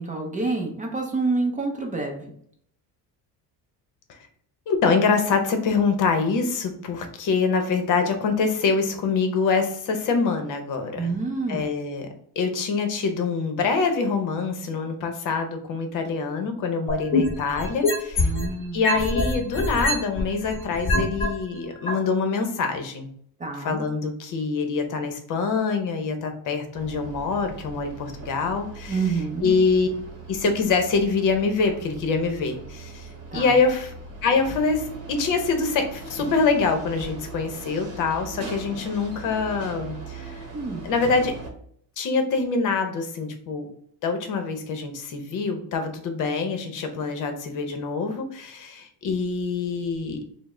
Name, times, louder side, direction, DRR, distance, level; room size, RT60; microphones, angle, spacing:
voice 1, 0.0-2.3 11.0-11.6 18.2-18.8 23.4-23.8 28.9-29.6 33.3-33.6 40.5-40.9, right 3 dB, 20° right, 1 dB, 0.5 m, -28 dB
voice 2, 4.7-11.1 11.5-12.1 12.4-18.3 18.7-23.1 23.6-29.1 29.4-29.9 30.3-33.9 34.2-40.4 40.8-41.3 42.0-43.7 44.0-50.4, left 4 dB, 50° left, 6 dB, 0.8 m, -25 dB
sound 1, 16.9-18.5 18.8-21.2 21.9-22.0, left 2 dB, 15° left, 1.1 m, -23 dB
sound 2, 26.7-41.5, right 3 dB, 40° right, 1.0 m, -39 dB
5.1 x 2.1 x 3.7 m, 0.63 s
cardioid pair, 170°, 39 cm